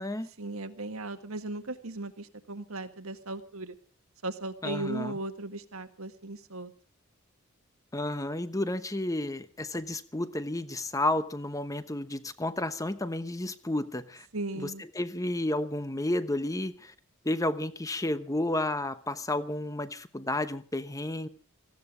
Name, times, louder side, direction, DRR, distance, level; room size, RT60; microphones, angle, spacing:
voice 1, 0.3-3.8 4.2-6.7 14.3-14.8, right 2 dB, 70° right, 9 dB, 1.7 m, -37 dB
voice 2, 4.6-5.1 7.9-14.3 15.0-16.9 17.2-21.3, left 1 dB, 15° left, 12 dB, 1.0 m, -31 dB
18.0 x 16.0 x 5.0 m, 0.40 s
head